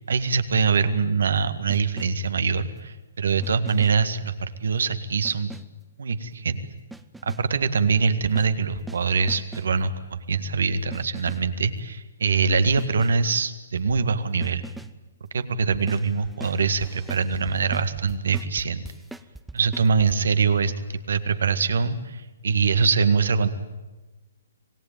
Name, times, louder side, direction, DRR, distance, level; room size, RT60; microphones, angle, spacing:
voice 1, 0.0-5.5 6.0-6.6 7.2-14.6 15.3-18.8 19.5-20.7 21.1-23.5, right 5 dB, 65° right, 10 dB, 1.8 m, -23 dB
sound 1, 1.7-2.4 3.4-4.2 5.2-5.8 6.9-7.6 8.2-9.8 10.9-11.6 12.8-13.3 14.4-15.0 15.7-20.2, right 2 dB, 5° right, 0.7 m, -42 dB
26.5 x 18.0 x 9.0 m, 1.2 s
figure-of-eight pair, 135°, 0 cm